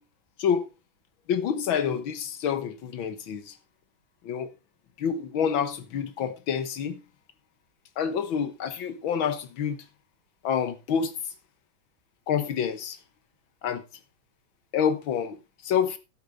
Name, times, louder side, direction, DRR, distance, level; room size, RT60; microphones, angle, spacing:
voice 1, 1.3-3.5 4.3-4.5 5.0-7.0 8.0-9.8 10.4-11.1 12.3-13.0 13.6-13.8 14.7-15.4 15.7-16.0, left 7 dB, 80° left, 1.9 m, -27 dB
12.0 x 8.6 x 3.9 m
omnidirectional pair, 2.2 m